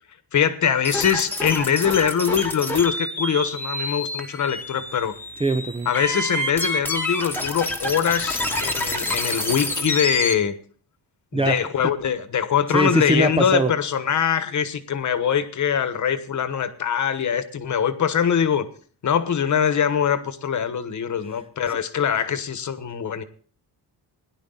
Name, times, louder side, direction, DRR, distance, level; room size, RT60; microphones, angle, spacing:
voice 1, 0.3-5.1 5.8-10.5 11.3-18.7 19.0-23.2, left 8 dB, 45° left, 1.2 m, -23 dB
sound 1, 0.8-10.3, left 1 dB, 5° left, 1.4 m, -28 dB
voice 2, 5.4-5.9 11.3-11.6 12.7-13.7, right 2 dB, 15° right, 0.5 m, -22 dB
17.0 x 11.0 x 3.9 m
wide cardioid pair, 165°, 40 cm